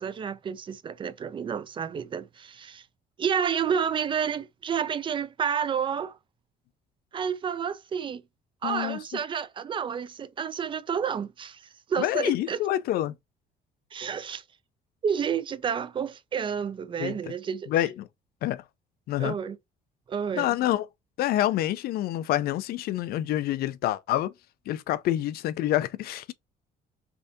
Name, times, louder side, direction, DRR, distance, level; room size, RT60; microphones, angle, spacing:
voice 1, 0.0-2.8 3.2-6.2 7.1-8.2 8.6-11.6 11.9-12.6 13.9-14.4 15.0-17.7 19.2-19.6 20.1-20.5, right 7 dB, 30° right, 0.3 m, -30 dB
voice 2, 8.6-9.0 12.0-13.1 17.0-17.1 17.7-18.1 18.4-18.6 19.1-19.4 20.4-20.9 21.2-24.3 24.7-26.3, left 13 dB, 65° left, 0.4 m, -27 dB
3.4 x 2.6 x 2.6 m
cardioid pair, 110°, 17 cm